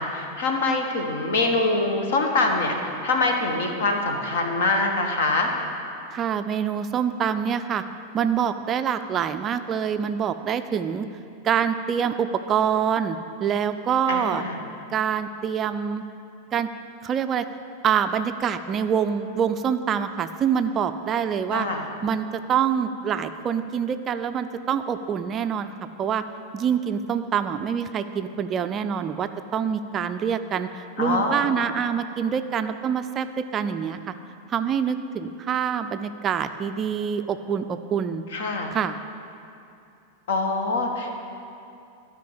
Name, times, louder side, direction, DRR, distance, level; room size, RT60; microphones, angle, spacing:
voice 1, 0.0-2.7 3.0-5.5 14.1-14.6 21.5-21.8 31.0-31.6 38.3-38.7 40.3-41.2, left 3 dB, 55° left, 3 dB, 1.3 m, -24 dB
voice 2, 6.1-7.8 8.1-11.1 11.4-14.4 14.9-16.0 16.5-16.7 17.0-17.5 17.8-21.7 22.0-25.7 26.0-26.2 26.5-34.1 34.5-38.2 38.7-39.0, right 7 dB, 25° right, 10 dB, 0.4 m, -25 dB
12.5 x 5.1 x 8.3 m, 2.7 s
figure-of-eight pair, 90°, 0 cm